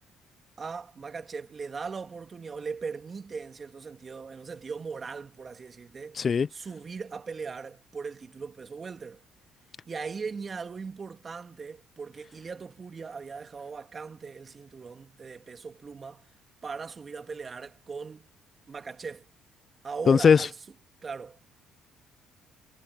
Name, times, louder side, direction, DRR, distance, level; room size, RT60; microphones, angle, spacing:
voice 1, 0.6-6.2 6.5-9.2 9.9-16.3 16.6-18.3 18.7-19.3 19.8-20.5 21.0-21.4, right 5 dB, 35° right, 2.4 m, -39 dB
voice 2, 6.2-6.5 20.1-20.5, left 6 dB, 45° left, 0.3 m, -19 dB
supercardioid pair, 70°, 0 cm